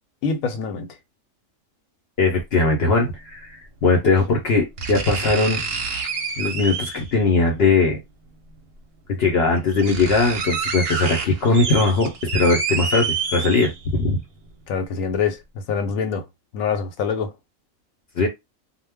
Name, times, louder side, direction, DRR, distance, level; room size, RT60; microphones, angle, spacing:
voice 1, 0.2-0.9 14.7-16.3 16.5-17.3, left 6 dB, 90° left, 1.0 m, -25 dB
voice 2, 2.2-3.6 3.8-5.6 6.4-8.0 9.1-14.2 18.2-18.3, left 3 dB, 60° left, 0.8 m, -20 dB
sound 1, 2.4-2.5 3.9-4.0 4.8-7.2 8.5-8.6 9.2-9.3 9.6-14.0 14.4-14.5, right 4 dB, 60° right, 0.8 m, -28 dB
2.2 x 2.0 x 3.4 m
omnidirectional pair, 1.4 m